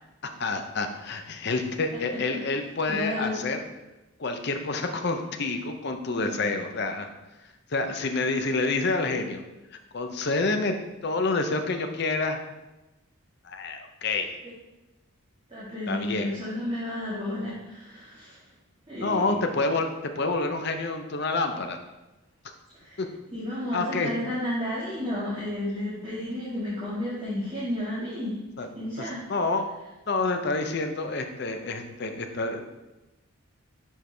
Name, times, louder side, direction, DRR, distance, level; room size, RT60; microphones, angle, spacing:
voice 1, 0.4-3.6 4.2-7.1 7.7-9.4 9.9-10.8 11.0-12.4 13.4-14.3 15.9-16.3 19.0-21.8 23.0-23.1 23.7-24.1 28.6-28.7 29.0-29.7 30.1-32.6, left 3 dB, 50° left, 6 dB, 0.6 m, -28 dB
voice 2, 2.9-3.4 15.5-18.4 18.9-19.4 22.8-23.0 23.3-28.4 28.7-29.2, left 1 dB, 25° right, -11 dB, 1.8 m, -32 dB
7.3 x 4.6 x 3.3 m, 1.0 s
head